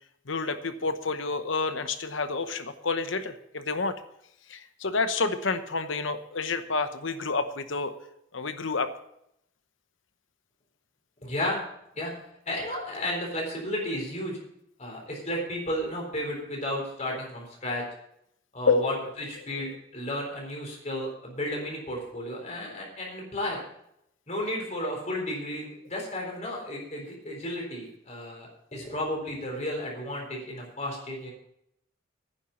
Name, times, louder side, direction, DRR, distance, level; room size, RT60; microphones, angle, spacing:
voice 1, 0.3-3.9 4.5-7.9 8.3-8.9 18.7-19.0, left 4 dB, 65° left, 10 dB, 0.9 m, -29 dB
voice 2, 11.2-11.6 12.0-12.1 12.5-14.4 14.8-17.8 18.5-23.6 24.3-31.3, left 1 dB, 35° left, -1 dB, 3.9 m, -33 dB
10.0 x 7.2 x 8.2 m, 0.76 s
head